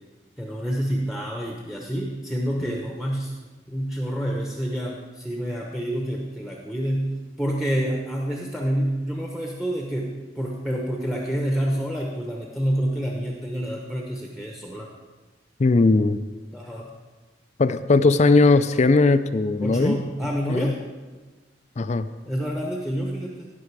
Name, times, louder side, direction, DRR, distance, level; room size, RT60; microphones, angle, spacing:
voice 1, 0.4-3.4 3.7-14.9 16.5-16.9 19.6-20.8 22.3-23.5, equal, ahead, -1 dB, 1.0 m, -28 dB
voice 2, 15.6-16.2 17.6-20.0 20.5-20.7 21.8-22.1, left 3 dB, 40° left, 12 dB, 0.4 m, -18 dB
17.0 x 6.1 x 4.7 m, 1.2 s
head